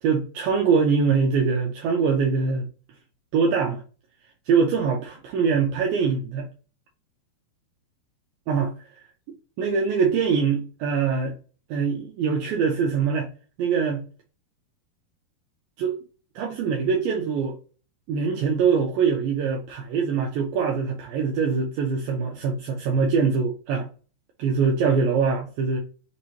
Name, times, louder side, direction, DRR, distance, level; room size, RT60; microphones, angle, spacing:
voice 1, 0.0-2.7 3.3-3.8 4.5-6.5 8.5-8.7 9.6-11.4 11.7-13.3 13.6-14.1 15.8-16.0 16.4-17.6 18.1-23.9 24.4-25.8, right 5 dB, 80° right, 2.1 m, -23 dB
6.5 x 2.6 x 3.0 m
omnidirectional pair, 4.9 m